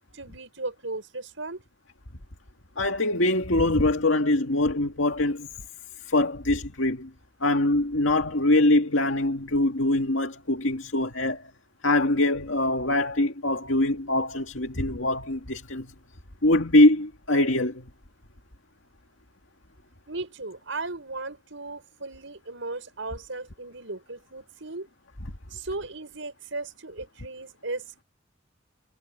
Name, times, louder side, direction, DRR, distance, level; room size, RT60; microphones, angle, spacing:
voice 1, 0.1-1.6 20.1-24.9 25.5-27.9, right 3 dB, 80° right, 5.7 m, -36 dB
voice 2, 2.8-5.5 6.0-7.1 7.4-11.5 11.8-15.9 16.4-17.9, left 1 dB, 80° left, 2.1 m, -23 dB
head